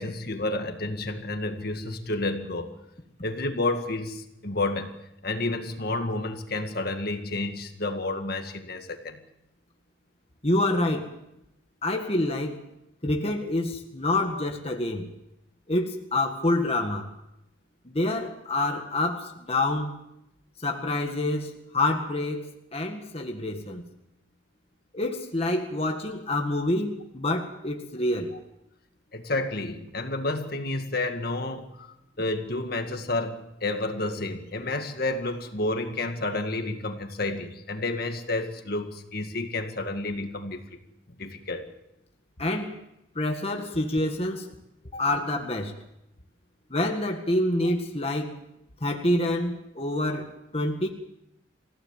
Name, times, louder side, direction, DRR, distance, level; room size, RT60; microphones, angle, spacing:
voice 1, 0.0-2.7 3.2-4.9 5.2-9.2 29.1-31.9 32.2-40.6 41.2-41.7, left 2 dB, 50° left, 6 dB, 2.0 m, -30 dB
voice 2, 10.4-11.1 11.8-12.6 13.0-15.1 15.7-17.1 17.9-19.9 20.6-22.5 22.7-23.8 24.9-28.3 42.4-42.8 43.2-44.5 44.9-45.7 46.7-48.4 48.8-50.9, left 1 dB, 30° left, 3 dB, 1.9 m, -27 dB
27.5 x 16.5 x 7.4 m, 0.85 s
head